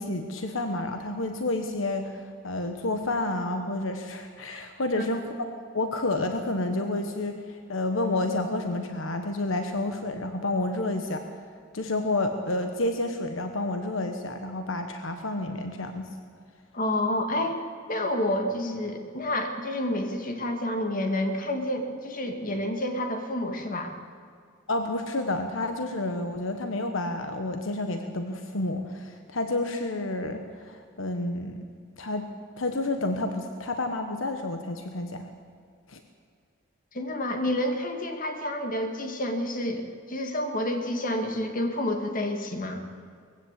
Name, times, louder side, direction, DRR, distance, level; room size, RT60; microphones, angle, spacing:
voice 1, 0.0-5.2 5.7-11.2 11.7-16.1 24.7-31.6 32.0-32.3 32.6-35.3 35.9-36.0, left 2 dB, 70° left, 6 dB, 1.4 m, -30 dB
voice 2, 16.7-17.6 17.9-23.9 36.9-42.8, left 1 dB, 40° left, 4 dB, 2.2 m, -29 dB
20.5 x 15.5 x 8.4 m, 2.1 s
head